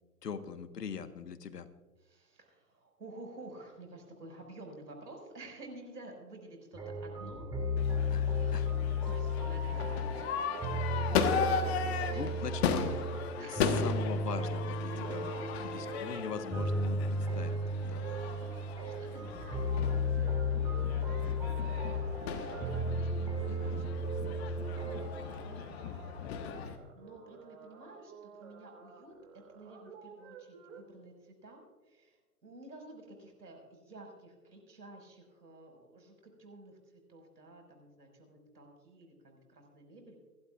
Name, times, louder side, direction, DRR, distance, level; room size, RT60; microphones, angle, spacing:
voice 1, 0.2-1.7 8.1-8.3 8.5-8.7 11.6-11.7 12.1-12.9 13.5-15.3 15.6-18.0 23.2-23.8, left 6 dB, 80° left, 10 dB, 1.4 m, -41 dB
voice 2, 2.0-7.8 8.3-8.6 9.0-12.4 13.4-13.9 14.9-15.8 18.0-21.8 22.2-25.1 25.4-26.3 26.6-40.2, right 2 dB, 90° right, 3 dB, 5.5 m, -52 dB
sound 1, 6.7-25.1, left 2 dB, 10° right, 1.8 m, -34 dB
Crowd / Fireworks, 7.8-26.8, left 6 dB, 40° left, 1.3 m, -37 dB
sound 2, 14.3-30.8, right 6 dB, 50° right, 2.8 m, -54 dB
28.5 x 12.0 x 2.4 m, 1.2 s
hypercardioid pair, 135°, 47 cm